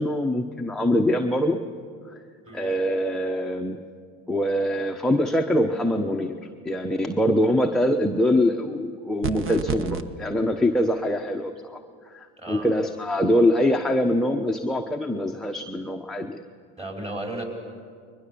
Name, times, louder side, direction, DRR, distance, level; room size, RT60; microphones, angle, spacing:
voice 1, 0.0-1.6 2.5-3.8 4.3-6.4 6.6-11.8 12.0-16.4, left 1 dB, ahead, 2 dB, 0.9 m, -23 dB
sound 1, 9.2-10.0, right 6 dB, 35° right, 1.1 m, -29 dB
voice 2, 12.4-12.7 16.8-17.5, right 2 dB, 15° right, 1 dB, 5.1 m, -34 dB
21.5 x 21.0 x 6.9 m, 2.1 s
supercardioid pair, 95°, 35 cm